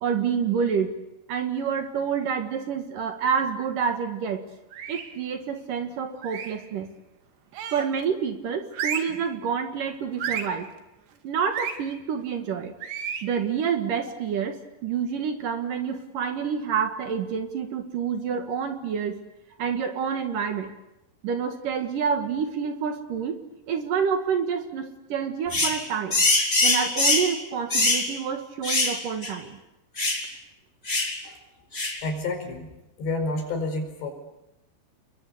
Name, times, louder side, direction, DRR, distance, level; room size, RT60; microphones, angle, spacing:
voice 1, 0.0-1.0 1.3-4.4 4.9-6.9 7.7-10.7 11.2-12.7 13.2-19.2 19.6-20.7 21.2-23.4 23.7-26.2 26.6-29.6, right 7 dB, 60° right, 6 dB, 2.8 m, -28 dB
sound 1, 4.7-5.2 6.2-6.7 7.5-8.0 8.7-9.2 10.2-10.6 11.5-11.8 12.8-13.3, right 8 dB, 75° right, 4.3 m, -32 dB
sound 2, 25.5-25.8 26.1-27.3 27.7-28.1 28.6-29.0 29.2-29.3 30.0-30.2 30.9-31.1 31.7-32.0, left 2 dB, 15° left, 3.5 m, -22 dB
voice 2, 32.0-32.7 33.0-34.1, left 2 dB, 80° left, 4 dB, 7.3 m, -29 dB
30.0 x 22.5 x 8.3 m, 0.90 s
omnidirectional pair, 4.9 m